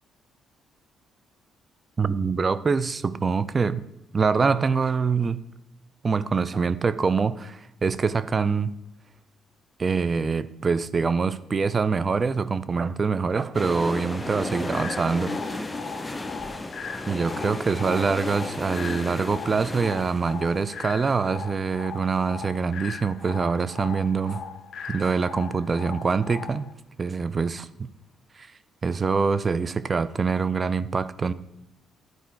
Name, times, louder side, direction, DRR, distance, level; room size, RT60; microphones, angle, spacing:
voice 1, 2.0-3.9 4.1-5.4 6.0-8.7 9.8-15.6 17.1-24.4 24.9-26.7 27.0-27.9 28.4-28.5 28.8-31.3, right 5 dB, 35° right, 0.4 m, -25 dB
sound 1, 13.5-23.4 23.6-23.7, left 2 dB, 15° left, 0.7 m, -35 dB
sound 2, 14.7-26.7, left 6 dB, 65° left, 0.6 m, -39 dB
10.5 x 4.6 x 4.5 m
supercardioid pair, 75°, 0 cm